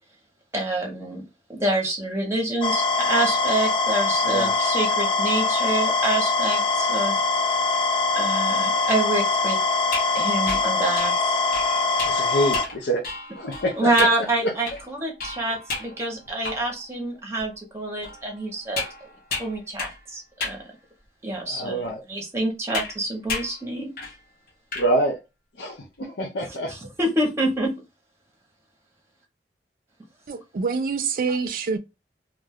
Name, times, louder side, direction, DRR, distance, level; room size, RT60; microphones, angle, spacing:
voice 1, 0.5-1.2 1.5-7.2 8.1-9.6 10.1-11.5 13.8-18.8 19.4-20.6 21.2-23.9 26.7-27.7, right 1 dB, 15° right, 0.7 m, -27 dB
sound 1, 2.6-12.6, left 3 dB, 30° left, 0.4 m, -23 dB
voice 2, 4.3-4.6 12.0-13.1 13.3-14.5 21.4-22.0 24.7-25.2 25.6-25.7 26.0-26.7, right 1 dB, 80° left, 0.5 m, -26 dB
sound 2, 9.8-16.9 17.4-17.5 18.0-20.1 20.4-20.7 21.3-21.4 22.7-23.0 23.3-23.6 24.0-24.2 24.5-24.9, left 3 dB, 55° left, 0.8 m, -34 dB
voice 3, 30.3-31.8, right 5 dB, 50° right, 0.4 m, -26 dB
2.4 x 2.2 x 3.5 m
head